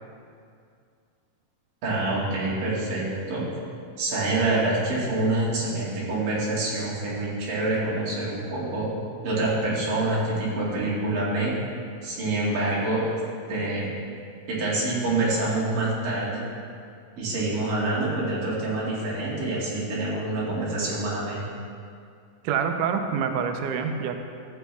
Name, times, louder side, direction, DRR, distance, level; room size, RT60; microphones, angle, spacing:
voice 1, 1.8-3.4 4.0-8.9 9.2-11.5 12.0-13.0 13.5-13.9 14.5-16.4 17.2-21.4, right 2 dB, 65° right, -7 dB, 3.9 m, -26 dB
voice 2, 22.4-24.2, right 6 dB, 90° right, 5 dB, 1.8 m, -26 dB
14.5 x 7.7 x 3.4 m, 2.3 s
omnidirectional pair, 4.3 m